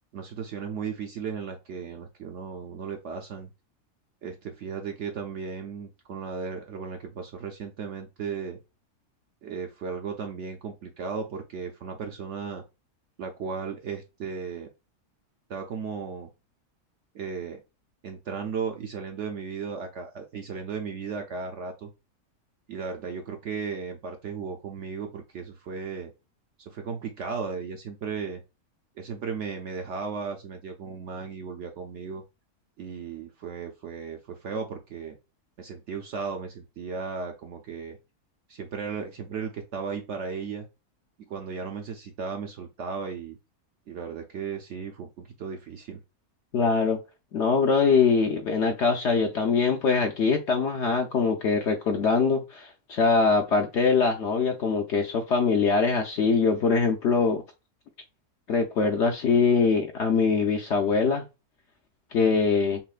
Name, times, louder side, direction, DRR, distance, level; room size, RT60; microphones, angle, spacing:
voice 1, 0.1-3.5 4.2-8.6 9.4-12.6 13.2-14.7 15.5-16.3 17.1-17.6 18.0-21.9 22.7-26.1 26.7-28.4 29.0-32.2 32.8-35.2 35.6-38.0 38.5-40.7 41.3-43.4 43.9-46.0, right 5 dB, 65° right, 0.7 m, -35 dB
voice 2, 46.5-47.0 47.3-57.4 58.5-61.2 62.1-62.8, left 5 dB, 65° left, 0.7 m, -23 dB
5.5 x 2.1 x 2.4 m
omnidirectional pair, 1.6 m